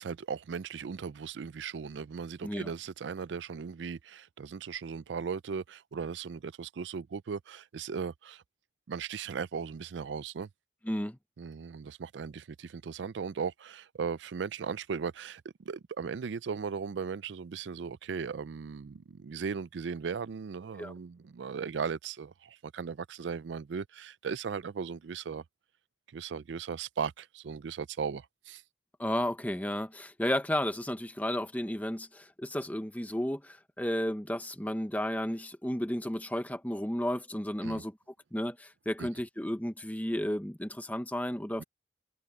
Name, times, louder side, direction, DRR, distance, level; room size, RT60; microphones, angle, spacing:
voice 1, 0.0-8.4 8.9-10.5 11.4-25.4 26.1-28.6 37.6-37.8 39.0-39.1 41.6-41.7, right 6 dB, 90° right, 0.4 m, -37 dB
voice 2, 10.8-11.2 20.8-20.9 29.0-38.0 38.3-41.6, left 1 dB, 10° left, 1.0 m, -33 dB
head